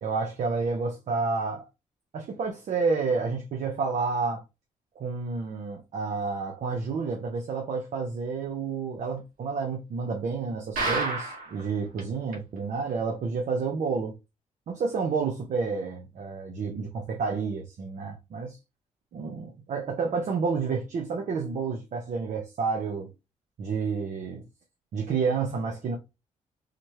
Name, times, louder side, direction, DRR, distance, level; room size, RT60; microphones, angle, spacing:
voice 1, 0.0-1.7 2.1-4.4 5.0-14.1 14.7-18.6 19.1-23.1 23.6-24.4 24.9-26.0, right 4 dB, 65° right, 1.0 m, -30 dB
sound 1, 10.8-11.6 12.0-12.1 12.3-12.4 12.9-13.0, right 3 dB, 90° right, 1.8 m, -29 dB
4.2 x 2.9 x 3.1 m
cardioid pair, 110°, 14 cm